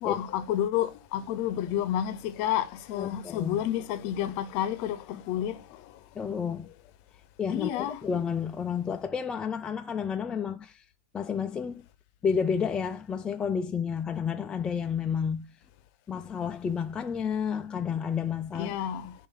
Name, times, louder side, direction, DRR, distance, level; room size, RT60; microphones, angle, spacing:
voice 1, 0.0-5.6 7.5-8.0 18.5-19.1, left 11 dB, 40° left, 0.7 m, -30 dB
voice 2, 3.0-3.6 6.2-6.7 7.4-10.8 11.1-11.8 12.2-15.4 16.1-18.8, left 7 dB, 15° left, 0.3 m, -30 dB
7.0 x 2.5 x 5.7 m
hypercardioid pair, 140°, 7 cm